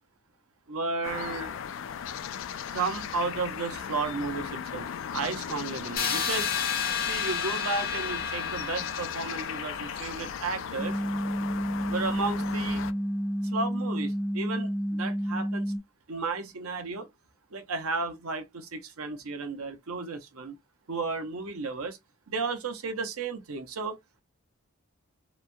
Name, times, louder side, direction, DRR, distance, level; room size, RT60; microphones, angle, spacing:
voice 1, 0.7-1.5 2.7-6.5 7.0-11.0 11.9-12.9 13.4-15.7 16.1-17.1 17.5-20.5 20.9-22.0 22.3-24.0, right 4 dB, 90° right, 0.7 m, -33 dB
sound 1, 1.0-12.9, left 8 dB, 65° left, 0.3 m, -37 dB
sound 2, 6.0-11.8, left 6 dB, 45° left, 0.9 m, -32 dB
sound 3, 10.8-15.8, equal, ahead, 0.4 m, -30 dB
3.0 x 2.1 x 2.6 m
head